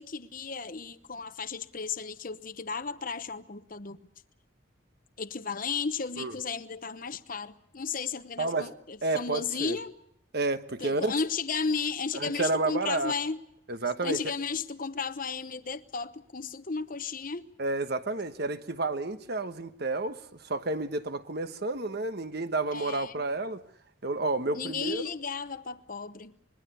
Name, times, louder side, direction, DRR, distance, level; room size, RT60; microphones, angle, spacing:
voice 1, 0.0-4.0 5.2-9.9 10.8-13.4 14.0-17.5 22.7-23.2 24.5-26.3, left 5 dB, 45° left, 0.9 m, -34 dB
voice 2, 8.4-8.7 9.0-9.8 10.3-11.1 12.1-13.1 13.7-14.2 17.6-23.6 24.0-25.0, right 2 dB, 55° right, 1.2 m, -30 dB
26.0 x 21.5 x 6.9 m
head